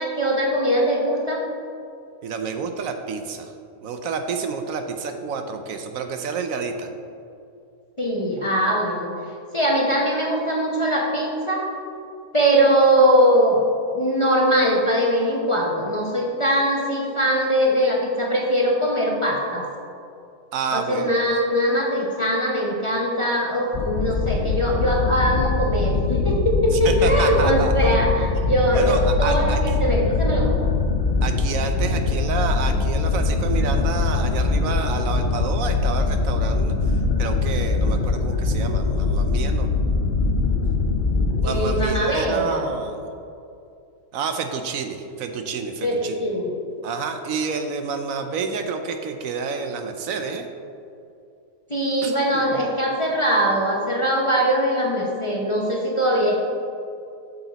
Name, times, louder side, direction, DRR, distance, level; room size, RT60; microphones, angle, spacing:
voice 1, 0.0-1.4 8.0-9.1 9.5-11.7 12.3-13.6 13.9-19.7 20.7-30.7 41.4-42.6 45.8-46.5 51.7-56.4, equal, 25° left, -3 dB, 0.7 m, -21 dB
voice 2, 2.2-3.5 3.8-6.9 20.5-21.2 26.7-27.9 28.3-29.6 31.2-36.7 37.2-39.7 41.4-43.1 44.1-46.2 46.8-50.5 52.0-52.4, right 5 dB, 70° right, 6 dB, 1.0 m, -29 dB
sound 1, 23.7-41.8, left 3 dB, 85° left, 0.4 m, -22 dB
8.1 x 6.9 x 4.0 m, 2.6 s
omnidirectional pair, 1.5 m